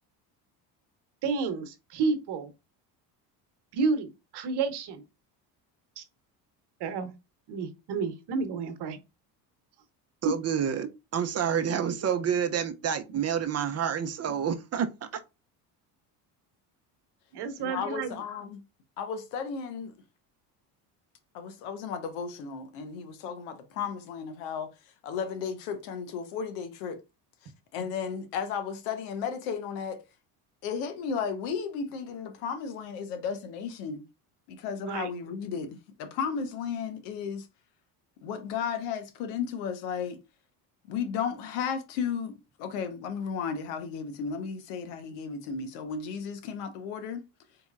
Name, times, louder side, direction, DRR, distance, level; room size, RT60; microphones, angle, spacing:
voice 1, 1.2-2.5 3.7-5.0 6.0-6.1 6.8-7.1 7.5-9.0 14.3-14.4 17.3-18.2 34.8-35.1, right 4 dB, 55° right, 1.0 m, -30 dB
voice 2, 10.2-14.9, right 8 dB, 35° right, 0.6 m, -28 dB
voice 3, 17.6-18.6 19.0-19.9 21.3-24.7 25.0-27.0 27.7-30.0 30.6-34.0 34.5-37.5 38.2-40.2 40.9-47.3, left 6 dB, 80° left, 0.9 m, -34 dB
4.1 x 2.9 x 2.4 m
supercardioid pair, 75°, 47 cm